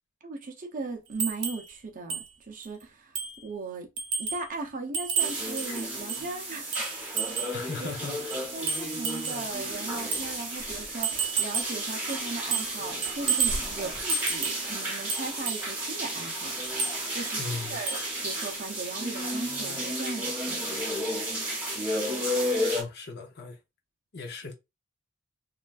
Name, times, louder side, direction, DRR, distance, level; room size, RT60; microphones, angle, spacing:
voice 1, 0.2-3.9 4.2-6.9 7.2-7.9 8.5-16.5 17.1-20.7, right 3 dB, 35° right, 0.5 m, -38 dB
sound 1, 1.2-1.7 2.1-2.3 2.6-2.7 3.2-3.4 4.0-4.5 4.9-6.3 6.7-7.6 8.3-9.5 10.1-10.3 11.0-11.8 12.1-12.8 13.0-13.6 14.1-14.7 15.1-15.7 16.6-17.0 17.9-18.1 18.4-18.5, right 6 dB, 80° right, 0.8 m, -31 dB
sound 2, 5.2-22.8, equal, 5° right, 1.1 m, -33 dB
voice 2, 7.5-8.5 8.9-9.0 17.4-17.8 22.7-23.6 24.1-24.6, left 4 dB, 45° left, 0.6 m, -38 dB
Drawer open or close, 9.6-12.0 12.4-14.5, equal, 10° left, 0.7 m, -44 dB
3.1 x 2.4 x 2.3 m
head